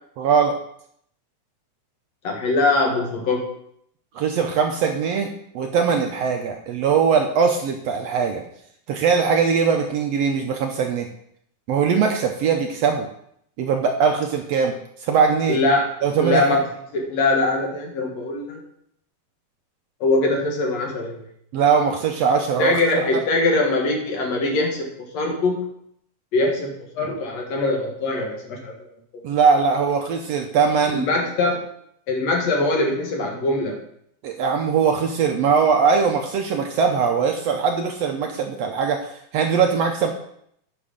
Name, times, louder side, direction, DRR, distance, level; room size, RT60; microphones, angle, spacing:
voice 1, 0.2-0.6 4.1-8.4 8.9-11.1 11.7-13.1 13.6-14.7 15.0-15.6 16.0-16.6 21.5-23.0 29.2-31.1 34.2-40.1, right 6 dB, 70° right, 4 dB, 1.6 m, -21 dB
voice 2, 2.2-3.5 15.5-16.6 16.9-18.6 20.0-21.2 22.6-25.6 26.3-28.9 30.9-31.7 32.1-33.8, left 2 dB, 60° left, 1 dB, 2.6 m, -22 dB
9.7 x 6.3 x 5.0 m, 0.70 s
omnidirectional pair, 3.5 m